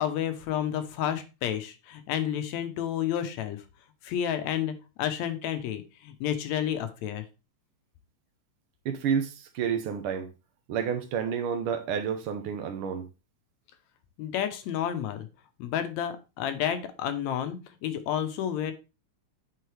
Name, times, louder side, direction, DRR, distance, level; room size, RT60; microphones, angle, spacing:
voice 1, 0.0-3.6 4.0-4.7 5.0-7.2 14.2-15.3 15.6-18.7, left 10 dB, 75° left, 2.0 m, -30 dB
voice 2, 8.8-10.3 10.7-13.1, right 7 dB, 75° right, 1.2 m, -30 dB
9.3 x 4.0 x 3.3 m
omnidirectional pair, 3.5 m